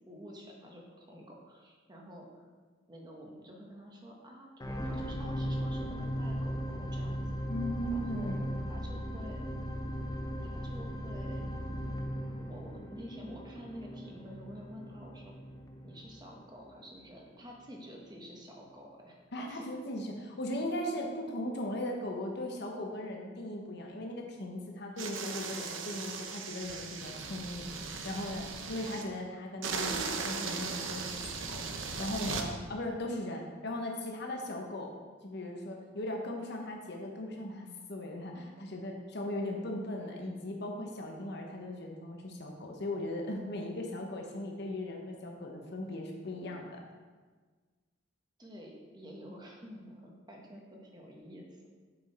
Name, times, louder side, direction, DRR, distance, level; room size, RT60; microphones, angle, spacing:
voice 1, 0.1-2.5 2.9-7.2 7.9-8.3 8.7-9.4 10.4-11.4 12.4-15.3 15.8-19.6 48.4-51.7, equal, 20° right, 0 dB, 1.1 m, -49 dB
sound 1, 4.6-17.0 17.6-17.7, equal, 20° left, 0.5 m, -38 dB
voice 2, 7.5-8.6 19.3-31.6 32.0-34.9 35.2-46.8, left 1 dB, 60° left, 1 dB, 0.9 m, -38 dB
sound 2, 25.0-29.0 29.6-32.5, right 5 dB, 85° right, 0.8 m, -38 dB
6.7 x 6.2 x 4.2 m, 1.4 s
head